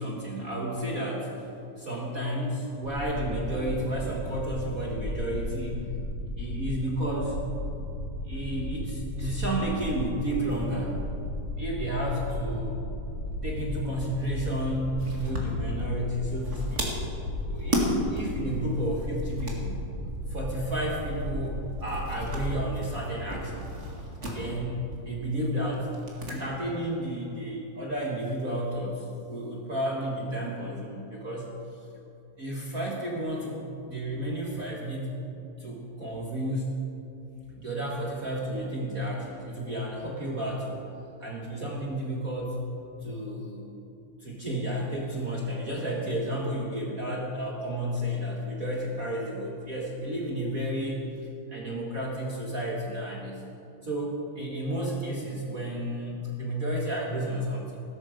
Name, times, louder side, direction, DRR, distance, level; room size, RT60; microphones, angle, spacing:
voice 1, 0.0-1.5 1.8-5.8 6.2-7.4 8.2-10.9 11.6-12.8 13.4-16.9 17.4-19.8 20.3-23.7 24.3-25.9 26.3-31.5 32.4-35.2 35.6-36.8 37.6-40.8 41.2-42.6 43.0-43.7 44.2-51.0 51.5-53.4 53.8-57.8, right 1 dB, 60° right, -2 dB, 0.9 m, -32 dB
sound 1, 2.8-22.5, left 1 dB, 60° left, 3.4 m, -35 dB
sound 2, 15.0-26.4 26.6-26.7 28.0-28.7, equal, 25° right, 1.7 m, -35 dB
16.5 x 13.0 x 5.1 m, 2.7 s
omnidirectional pair, 4.0 m